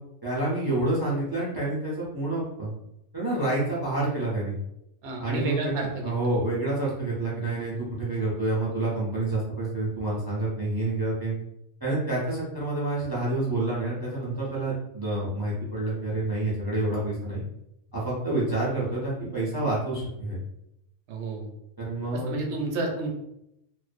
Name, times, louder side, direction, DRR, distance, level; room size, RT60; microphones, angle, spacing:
voice 1, 0.2-2.7 3.1-4.5 5.2-11.3 11.8-17.4 17.9-20.4 21.8-22.3, right 2 dB, 35° right, -7 dB, 0.3 m, -28 dB
voice 2, 5.0-6.1 21.1-21.5 22.1-23.1, right 3 dB, 70° right, 1 dB, 0.8 m, -31 dB
2.4 x 2.1 x 2.4 m, 0.82 s
omnidirectional pair, 1.3 m